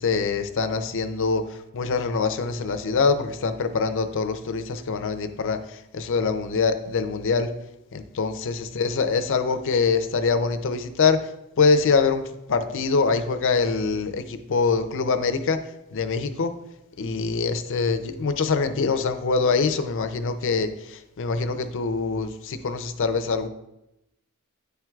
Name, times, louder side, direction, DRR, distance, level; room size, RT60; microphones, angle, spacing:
voice 1, 0.0-7.5 7.9-11.3 11.6-12.2 12.5-15.6 15.9-16.5 17.0-23.5, left 4 dB, 60° left, 9 dB, 0.5 m, -24 dB
9.3 x 4.5 x 2.4 m, 0.89 s
head